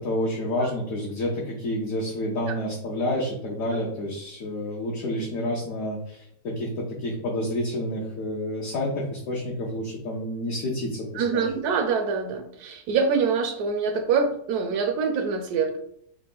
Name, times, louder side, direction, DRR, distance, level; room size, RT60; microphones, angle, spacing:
voice 1, 0.0-11.4, left 1 dB, 60° left, -3 dB, 1.0 m, -29 dB
voice 2, 11.1-15.8, right 5 dB, 70° right, 5 dB, 1.0 m, -25 dB
4.6 x 2.2 x 3.7 m, 0.71 s
omnidirectional pair, 1.9 m